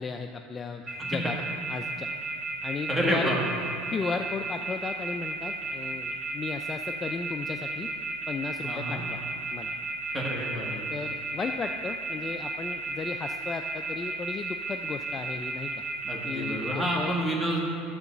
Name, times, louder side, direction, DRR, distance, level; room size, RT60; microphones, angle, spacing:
voice 1, 0.0-1.4 1.7-2.1 2.6-3.3 3.9-7.9 8.3-9.2 9.5-9.7 10.9-15.8 16.2-17.1, left 5 dB, 20° left, 5 dB, 0.3 m, -35 dB
sound 1, 0.9-17.1, right 3 dB, 25° right, 2.0 m, -33 dB
voice 2, 2.9-3.4 8.6-9.0 10.1-10.9 16.0-17.6, right 1 dB, 10° right, -3 dB, 1.6 m, -29 dB
11.5 x 3.9 x 7.1 m, 2.7 s
supercardioid pair, 145°, 0 cm